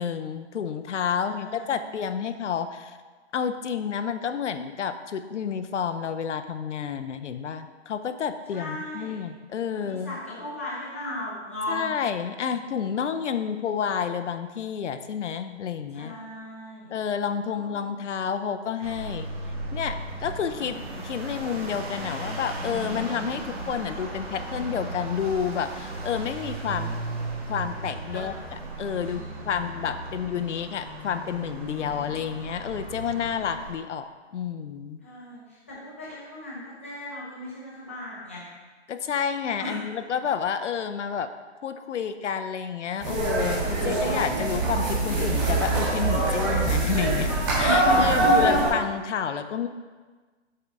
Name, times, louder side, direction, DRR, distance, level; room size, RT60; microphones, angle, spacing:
voice 1, 0.0-3.0 3.3-10.2 11.7-16.1 16.9-19.3 19.7-26.9 27.5-28.3 28.8-35.0 38.9-41.3 41.6-47.3 47.6-49.7, left 7 dB, 80° left, 10 dB, 0.6 m, -30 dB
voice 2, 1.1-1.7 8.5-9.2 9.7-11.9 15.9-17.0 17.5-18.0 28.1-30.1 35.0-38.4 39.6-39.8 44.0-44.7, left 1 dB, 10° left, -8 dB, 0.5 m, -38 dB
sound 1, 18.8-33.7, right 2 dB, 55° right, 1.5 m, -36 dB
sound 2, 43.0-48.7, right 2 dB, 20° right, 1.5 m, -23 dB
7.8 x 3.8 x 4.6 m, 1.4 s
hypercardioid pair, 175°, 35 cm